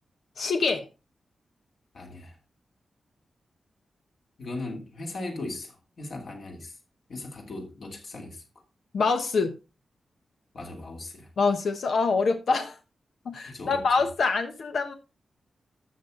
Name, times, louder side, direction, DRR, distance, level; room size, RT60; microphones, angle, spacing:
voice 1, 0.4-0.9 8.9-9.6 11.4-12.8 13.2-14.9, left 4 dB, 70° left, 1.1 m, -25 dB
voice 2, 1.9-2.4 4.4-6.8 7.1-8.4 10.5-11.3 13.4-14.0, left 2 dB, 55° left, 2.9 m, -38 dB
12.5 x 6.8 x 3.8 m
wide cardioid pair, 160°, 0 cm